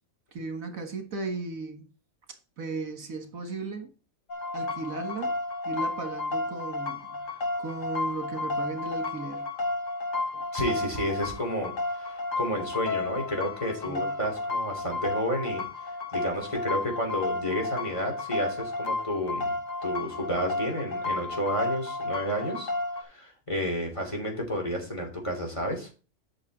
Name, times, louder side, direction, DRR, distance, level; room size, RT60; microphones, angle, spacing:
voice 1, 0.3-1.9 2.6-3.9 4.5-5.4 5.6-9.5 10.3-10.5 13.8-14.1, right 3 dB, 75° right, 2.0 m, -36 dB
sound 1, 4.3-23.0, left 2 dB, 70° left, 1.6 m, -32 dB
voice 2, 10.5-15.6 16.1-19.5 19.8-22.7 23.0-25.9, equal, 20° left, 3.1 m, -31 dB
8.3 x 6.5 x 4.1 m
omnidirectional pair, 1.4 m